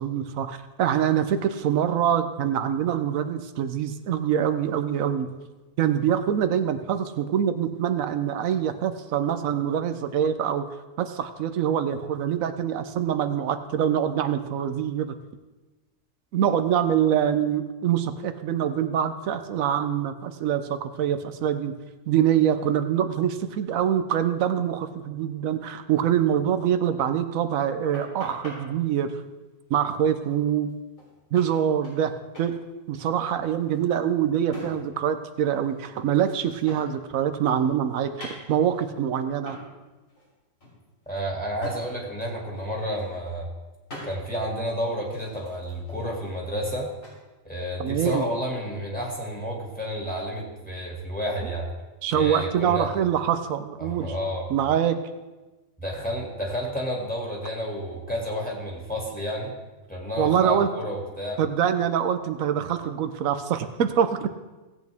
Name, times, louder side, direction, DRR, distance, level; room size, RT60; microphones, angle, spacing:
voice 1, 0.0-5.3 5.8-10.7 11.0-15.2 16.3-21.7 22.1-29.1 29.7-30.7 31.3-32.1 32.4-32.6 32.9-39.6 47.8-48.3 52.0-54.1 54.5-55.0 60.2-60.7 61.4-64.3, right 9 dB, 90° right, 10 dB, 1.1 m, -24 dB
sound 1, 27.9-28.6 30.7-30.8 31.0-31.1 31.3-32.1 32.3-32.5 32.8-35.1 35.4-37.1 37.4-38.9 39.5-39.7 40.1-40.3 40.6-41.8 42.2-42.4 42.7-43.3 43.9-44.1 44.6-47.2, equal, 75° left, 4.2 m, -44 dB
voice 2, 41.1-43.5 44.0-46.9 47.4-51.7 52.1-52.9 53.8-54.5 55.8-59.5 59.9-61.4, equal, 5° left, -3 dB, 2.3 m, -30 dB
16.5 x 8.3 x 3.5 m, 1.2 s
omnidirectional pair, 1.4 m